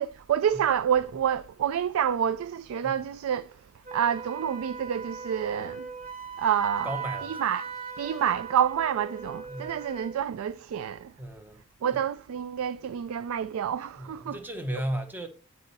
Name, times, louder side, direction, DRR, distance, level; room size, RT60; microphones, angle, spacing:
voice 1, 0.0-5.9 6.4-6.9 7.2-7.7 8.0-11.1 11.8-14.4, right 9 dB, 75° right, 0.3 m, -28 dB
Wind instrument woodwind instrument, 3.8-10.2, right 6 dB, 40° right, 0.9 m, -39 dB
voice 2, 6.8-7.4 9.5-9.7 11.2-11.6 11.9-12.0 14.0-15.3, right 1 dB, 10° right, 0.8 m, -35 dB
8.8 x 4.2 x 4.1 m
head